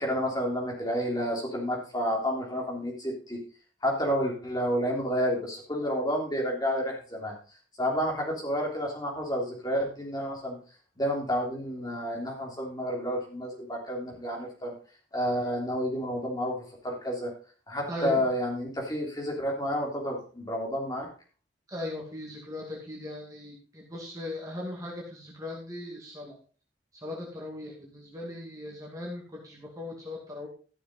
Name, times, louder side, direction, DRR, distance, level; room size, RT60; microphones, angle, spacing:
voice 1, 0.0-3.4 3.8-7.4 7.8-10.6 11.0-14.7 15.1-17.3 17.7-21.1, equal, 20° left, -1 dB, 3.2 m, -30 dB
voice 2, 17.9-18.2 21.7-26.3 27.0-30.5, left 1 dB, 20° right, -3 dB, 2.4 m, -38 dB
13.5 x 6.8 x 4.1 m, 0.39 s
head